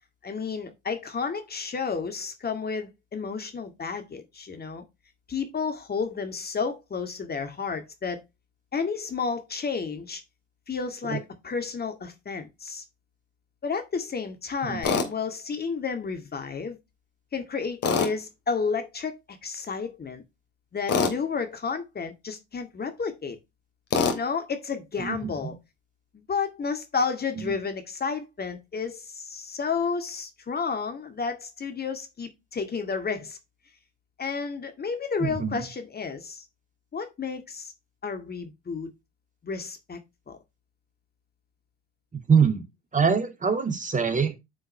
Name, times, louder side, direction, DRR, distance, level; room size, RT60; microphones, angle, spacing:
voice 1, 0.2-4.8 5.3-8.2 8.7-10.2 10.7-12.8 13.6-16.8 17.3-20.2 20.7-23.4 24.1-25.6 26.1-33.4 34.2-36.5 36.9-37.7 38.0-38.9 39.4-40.0 40.3-40.4, left 5 dB, 30° left, 2.1 m, -31 dB
voice 2, 14.6-15.0 25.0-25.5 35.2-35.6 42.3-42.6 42.9-44.4, right 6 dB, 20° right, 2.6 m, -24 dB
Tools, 14.8-15.1 17.8-18.1 20.9-21.2 23.9-24.2, left 5 dB, 45° left, 3.0 m, -23 dB
10.0 x 5.6 x 3.4 m
hypercardioid pair, 70°, 34 cm